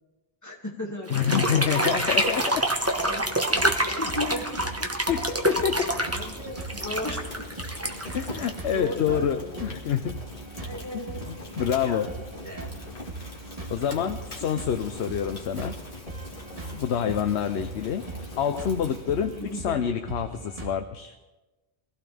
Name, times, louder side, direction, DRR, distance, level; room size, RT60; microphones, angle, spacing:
voice 1, 0.4-1.9 3.0-3.3 3.6-4.6 5.0-5.1 5.7-7.5 7.8-8.2 8.7-9.7 10.6-11.2 11.8-12.7 13.5-13.9 14.4-14.5 16.5-16.9 19.4-19.9, left 1 dB, 15° left, -2 dB, 2.4 m, -37 dB
voice 2, 1.1-2.6 3.5-3.6 5.1-5.9 8.1-10.2 10.9-12.1 13.7-15.7 16.7-18.0 18.4-21.2, left 8 dB, 75° left, 8 dB, 1.0 m, -27 dB
sound 1, 1.1-9.1, right 1 dB, 15° right, 1.2 m, -27 dB
sound 2, 3.5-20.7, right 3 dB, 35° right, 1.7 m, -40 dB
Fire, 5.5-19.8, left 2 dB, 50° left, 2.3 m, -43 dB
23.5 x 16.0 x 3.5 m, 1.1 s
omnidirectional pair, 1.1 m